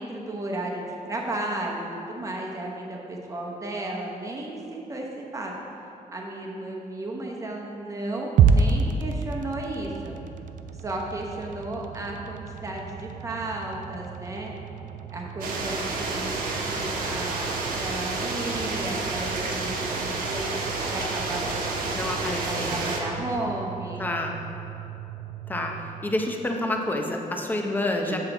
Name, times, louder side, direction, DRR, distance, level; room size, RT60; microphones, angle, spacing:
voice 1, 0.0-5.5 6.1-10.1 10.8-14.5 15.1-20.5 20.9-24.1 28.0-28.1, right 1 dB, 20° right, -1 dB, 0.9 m, -34 dB
sound 1, 8.4-26.6, right 5 dB, 65° right, 0.4 m, -31 dB
sound 2, 15.4-23.0, right 3 dB, 85° right, 1.1 m, -30 dB
voice 2, 21.9-22.9 24.0-24.4 25.5-25.7 26.0-28.2, left 1 dB, 10° left, 2 dB, 0.6 m, -28 dB
7.9 x 7.4 x 3.9 m, 2.8 s
wide cardioid pair, 170°, 15 cm